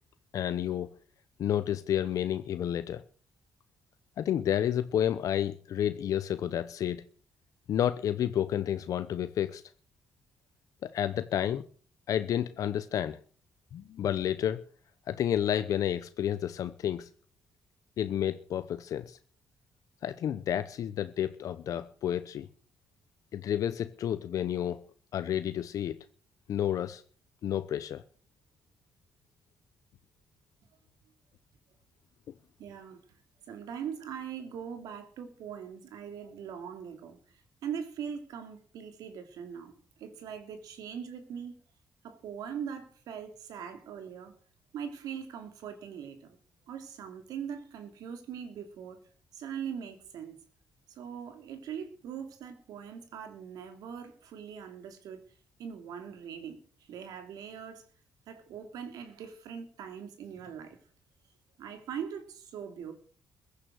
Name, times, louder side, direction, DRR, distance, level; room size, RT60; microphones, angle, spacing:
voice 1, 0.3-0.9 1.4-3.0 4.2-7.0 7.7-9.6 10.8-11.7 12.1-13.2 13.7-14.6 15.1-17.1 18.0-19.2 20.0-22.5 23.3-24.8 25.1-26.0 26.5-27.0 27.4-28.0, left 10 dB, 65° left, 0.8 m, -30 dB
voice 2, 32.6-33.0 33.5-39.7 40.0-41.5 42.0-44.3 44.7-46.4 46.7-49.0 49.3-50.4 50.9-55.2 55.6-57.8 58.3-60.8 61.6-62.9, right 7 dB, 80° right, 2.9 m, -41 dB
15.5 x 9.7 x 6.4 m
cardioid pair, 125°, 6 cm